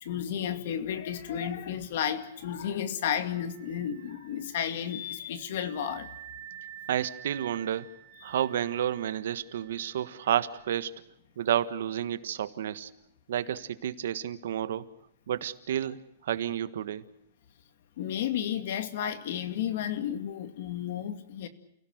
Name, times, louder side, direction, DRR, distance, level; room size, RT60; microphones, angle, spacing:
voice 1, 0.0-6.1 18.0-21.5, left 9 dB, 55° left, 10 dB, 2.3 m, -32 dB
Wind instrument woodwind instrument, 3.3-10.7, right 11 dB, 40° right, 5.2 m, -49 dB
voice 2, 6.9-7.9 8.2-10.9 11.4-12.9 13.3-14.9 15.3-17.0, right 10 dB, 65° right, 13 dB, 1.5 m, -30 dB
30.0 x 17.0 x 8.0 m, 0.78 s
supercardioid pair, 170°, 0 cm